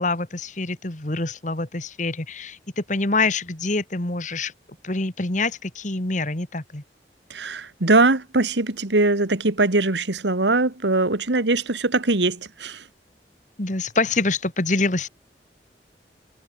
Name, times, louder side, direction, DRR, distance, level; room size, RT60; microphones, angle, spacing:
voice 1, 0.0-4.5 4.8-6.8 13.6-15.1, left 3 dB, 45° left, 2.2 m, -25 dB
voice 2, 7.3-12.8, right 2 dB, 90° right, 1.9 m, -21 dB
head